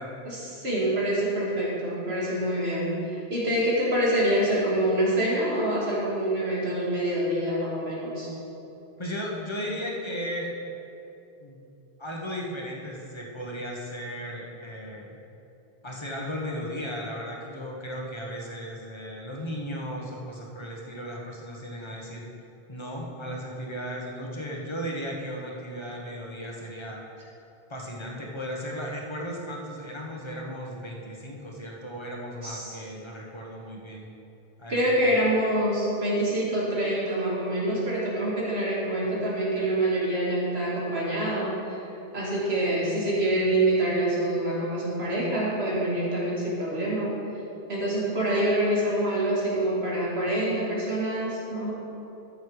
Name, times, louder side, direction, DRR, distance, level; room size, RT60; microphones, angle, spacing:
voice 1, 0.2-8.3 32.4-32.7 34.7-41.8 42.1-47.2 47.7-51.7, right 1 dB, 80° right, -6 dB, 2.7 m, -26 dB
voice 2, 9.0-10.5 11.4-11.6 12.0-15.2 15.8-22.3 22.7-27.0 27.7-34.1 34.6-35.1, equal, 25° left, -1 dB, 1.5 m, -36 dB
13.0 x 6.8 x 4.9 m, 2.9 s
omnidirectional pair, 1.0 m